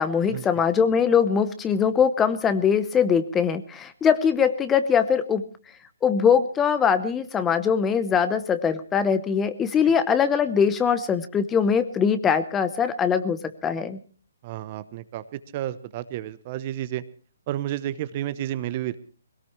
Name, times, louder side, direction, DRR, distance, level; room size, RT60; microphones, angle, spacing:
voice 1, 0.0-5.4 6.0-14.0, left 7 dB, 15° left, 12 dB, 0.8 m, -22 dB
voice 2, 14.4-17.0 17.5-19.0, right 13 dB, 35° right, 15 dB, 0.8 m, -31 dB
20.5 x 18.0 x 3.2 m, 0.38 s
hypercardioid pair, 145°, 0 cm